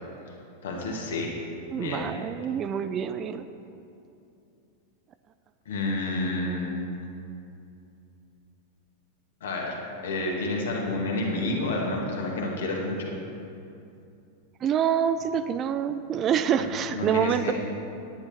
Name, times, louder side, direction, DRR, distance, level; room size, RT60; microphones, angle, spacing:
voice 1, 0.6-1.3 1.7-2.1 5.7-6.9 9.4-9.7 10.0-13.1 16.9-17.5, left 2 dB, 60° left, -1 dB, 1.9 m, -29 dB
voice 2, 1.7-3.5 14.6-17.5, right 8 dB, 30° right, 11 dB, 0.4 m, -26 dB
10.5 x 10.0 x 4.3 m, 2.7 s
figure-of-eight pair, 90°, 0 cm